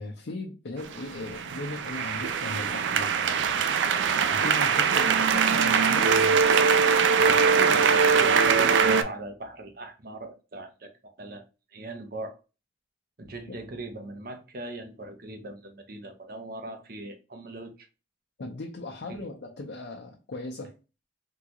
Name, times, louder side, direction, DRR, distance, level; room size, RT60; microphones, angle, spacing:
voice 1, 0.0-3.6 4.3-6.4 18.4-20.7, left 2 dB, 75° left, 0.6 m, -38 dB
sound 1, 0.9-9.0, right 6 dB, 90° right, 0.4 m, -22 dB
voice 2, 7.2-10.9 11.2-11.4 11.7-12.3 13.2-17.9 19.1-19.2, right 1 dB, 55° right, 0.7 m, -39 dB
3.7 x 2.3 x 2.9 m
head